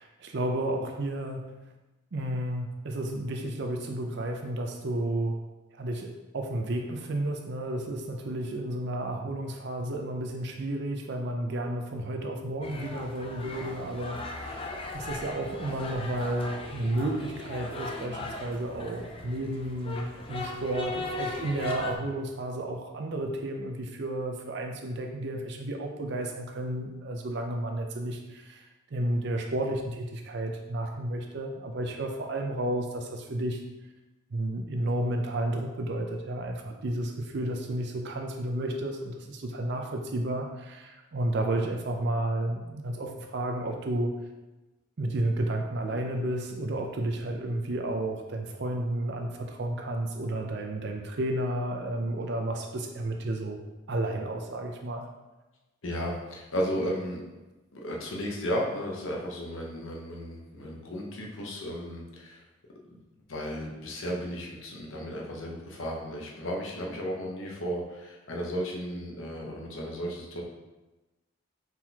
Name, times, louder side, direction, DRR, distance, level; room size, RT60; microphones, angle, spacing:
voice 1, 0.0-1.7 2.1-5.4 5.8-14.7 14.9-28.7 28.9-33.6 34.3-44.1 45.0-53.6 53.9-55.1, right 1 dB, 55° right, 3 dB, 0.5 m, -32 dB
sound 1, 12.6-22.0, left 2 dB, 25° left, 0.4 m, -38 dB
voice 2, 55.8-57.2 57.7-62.4 62.9-63.0 63.3-70.4, equal, 70° left, -1 dB, 0.9 m, -34 dB
4.5 x 3.9 x 2.8 m, 1.1 s
head